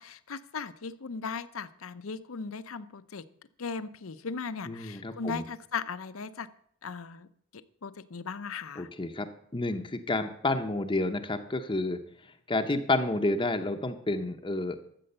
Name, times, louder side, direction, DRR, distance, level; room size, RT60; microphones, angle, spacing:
voice 1, 0.0-3.2 3.6-6.5 6.8-7.3 7.5-8.9, left 5 dB, 70° left, 14 dB, 0.7 m, -38 dB
voice 2, 4.7-5.4 8.8-9.3 9.5-12.0 12.5-14.8, left 2 dB, 25° left, 5 dB, 0.7 m, -30 dB
13.0 x 7.7 x 6.7 m, 0.66 s
head